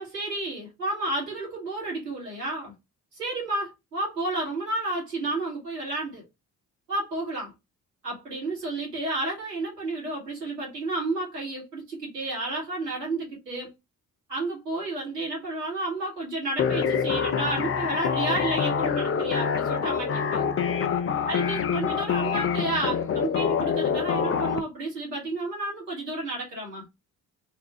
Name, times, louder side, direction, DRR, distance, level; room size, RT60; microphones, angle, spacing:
voice 1, 0.0-2.7 3.1-6.2 6.9-7.5 8.0-13.7 14.3-20.5 21.3-26.8, right 2 dB, 90° right, 1.5 m, -31 dB
sound 1, 16.6-24.6, left 7 dB, 30° left, 0.5 m, -26 dB
3.5 x 2.4 x 3.6 m
figure-of-eight pair, 45°, 47 cm